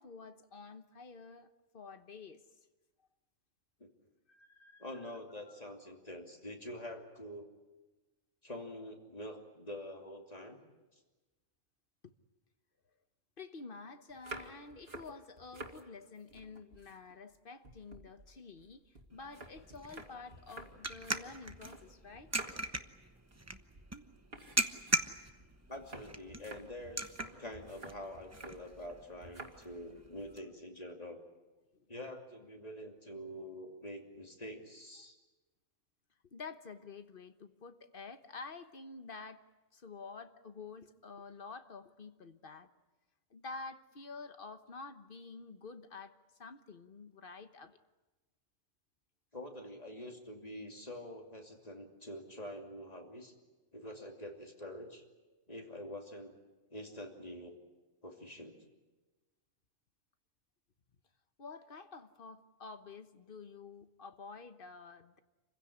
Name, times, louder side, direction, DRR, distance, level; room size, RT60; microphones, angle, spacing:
voice 1, 0.0-2.5 4.3-4.9 12.0-12.1 13.4-22.3 31.7-31.9 36.2-39.4 39.7-42.7 43.3-47.8 61.4-65.2, left 4 dB, 45° left, 1.3 m, -49 dB
voice 2, 4.8-7.5 8.4-10.6 25.7-31.2 31.9-35.1 49.3-53.3 53.7-55.0 55.5-56.3 56.7-57.6 58.0-58.5, left 1 dB, 30° left, 2.9 m, -46 dB
sound 1, 14.1-15.8 16.2-17.4 17.6-21.9 22.1-22.8 23.2-23.5 23.7-23.9 24.3-28.6 29.2-29.6 29.9-30.3, right 2 dB, 50° right, 2.6 m, -50 dB
sound 2, 19.1-30.4, right 2 dB, 15° right, 0.8 m, -41 dB
27.5 x 16.0 x 9.9 m
omnidirectional pair, 1.3 m